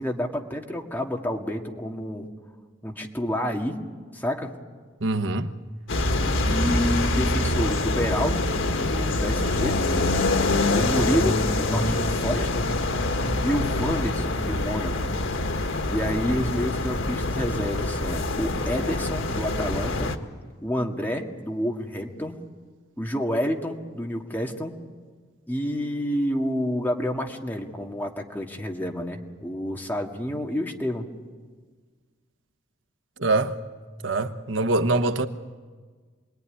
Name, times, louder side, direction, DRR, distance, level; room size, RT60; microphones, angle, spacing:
voice 1, 0.0-2.3 2.8-3.8 4.1-4.5 6.4-8.4 8.9-9.8 10.7-12.6 13.4-15.1 15.9-20.1 20.6-22.4 23.0-24.8 25.5-31.1, equal, 10° left, 2.0 m, -29 dB
voice 2, 5.0-5.5 33.2-33.6 34.0-35.3, right 2 dB, 85° right, 1.2 m, -23 dB
sound 1, 5.9-20.2, left 2 dB, 90° left, 1.7 m, -25 dB
27.5 x 21.0 x 9.9 m
head